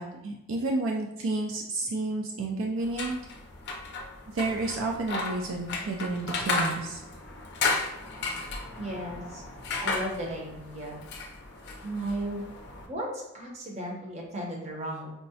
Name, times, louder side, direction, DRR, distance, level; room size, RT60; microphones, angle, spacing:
voice 1, 0.0-3.2 4.3-7.0, right 2 dB, 65° right, 0 dB, 0.4 m, -31 dB
sound 1, 2.8-12.9, left 3 dB, 50° left, 0.5 m, -34 dB
voice 2, 8.8-9.4 9.8-11.0 11.8-12.5 12.9-15.1, right 1 dB, 30° right, -2 dB, 0.7 m, -35 dB
4.5 x 2.0 x 2.7 m, 0.91 s
head